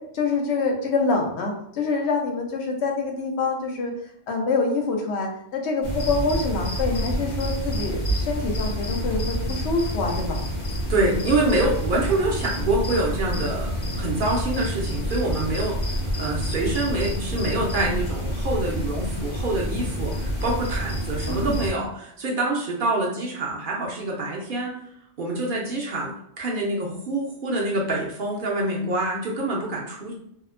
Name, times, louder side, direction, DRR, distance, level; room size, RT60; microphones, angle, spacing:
voice 1, 0.1-3.9 4.3-10.4 21.3-21.6, left 3 dB, 80° left, 1 dB, 0.9 m, -26 dB
sound 1, 5.8-21.7, equal, 50° left, 0.7 m, -28 dB
voice 2, 10.9-13.7 14.0-24.8 25.2-30.1, right 2 dB, 60° right, -2 dB, 0.7 m, -26 dB
2.7 x 2.1 x 2.4 m, 0.74 s
omnidirectional pair, 1.1 m